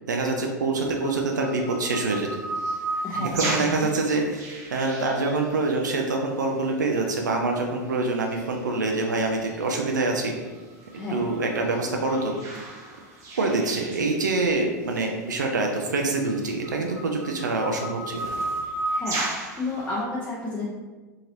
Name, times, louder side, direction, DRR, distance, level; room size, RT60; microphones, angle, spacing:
voice 1, 0.1-2.3 3.1-4.4 4.7-10.3 11.1-12.3 13.4-18.3, right 3 dB, 75° right, 1 dB, 0.4 m, -25 dB
sound 1, 0.7-6.0 7.4-7.5 8.0-8.6 9.0-14.5 14.9-15.0 15.7-20.0, right 2 dB, 30° right, 0.7 m, -34 dB
voice 2, 3.0-3.9 4.1-4.3 10.9-11.3 14.0-14.1 18.9-20.6, left 2 dB, 20° left, -7 dB, 0.6 m, -32 dB
2.9 x 2.8 x 2.6 m, 1.3 s
figure-of-eight pair, 90°, 10 cm